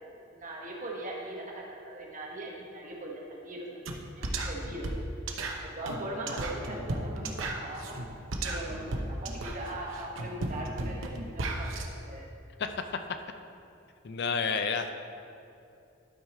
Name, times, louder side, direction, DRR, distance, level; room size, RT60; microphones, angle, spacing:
voice 1, 0.3-3.7 4.1-5.2 5.6-8.0 8.4-12.3, right 1 dB, 40° right, -2 dB, 1.3 m, -40 dB
sound 1, 3.9-11.9, right 2 dB, 75° right, 0.8 m, -34 dB
voice 2, 14.0-14.9, left 5 dB, 55° left, 8 dB, 0.4 m, -29 dB
11.5 x 4.8 x 4.3 m, 2.6 s
head